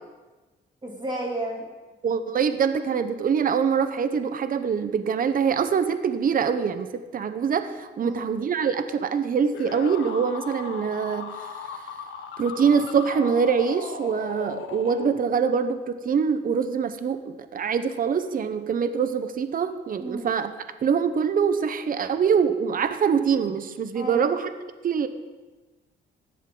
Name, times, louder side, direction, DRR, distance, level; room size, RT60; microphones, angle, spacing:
voice 1, 0.8-1.6 8.0-8.2 20.0-20.3 23.9-24.3, right 1 dB, 25° right, -1 dB, 2.9 m, -32 dB
voice 2, 2.0-11.7 12.4-20.5 20.8-24.5 24.8-25.1, right 6 dB, 45° right, 10 dB, 0.8 m, -24 dB
sound 1, 9.5-15.6, left 6 dB, 75° left, 1.2 m, -37 dB
15.0 x 11.0 x 3.8 m, 1.2 s
cardioid pair, 90°, 20 cm